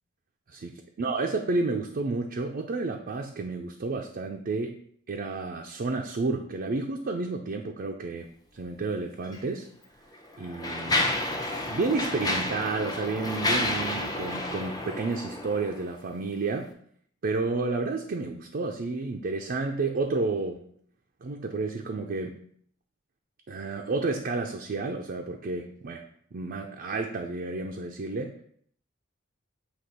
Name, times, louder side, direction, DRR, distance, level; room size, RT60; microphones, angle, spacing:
voice 1, 0.5-4.8 5.1-8.3 8.5-9.7 10.4-11.1 11.7-16.7 17.2-20.7 21.2-22.4 23.5-26.0 26.3-28.4, right 3 dB, 50° right, 2 dB, 0.5 m, -31 dB
Mechanisms, 9.2-9.4 10.1-15.9, left 1 dB, 20° left, 0.7 m, -30 dB
7.7 x 2.9 x 4.2 m, 0.62 s
head